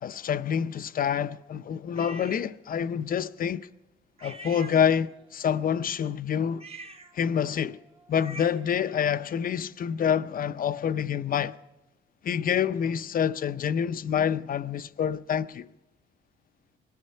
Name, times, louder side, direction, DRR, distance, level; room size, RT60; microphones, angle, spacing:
voice 1, 0.0-3.7 4.2-6.7 7.1-7.8 8.1-11.6 12.2-15.7, left 8 dB, 45° left, 0.5 m, -27 dB
sound 1, 1.9-2.5 4.2-5.3 6.5-8.8, right 2 dB, 30° right, 1.0 m, -46 dB
20.0 x 13.0 x 5.5 m
cardioid pair, 90°, 20 cm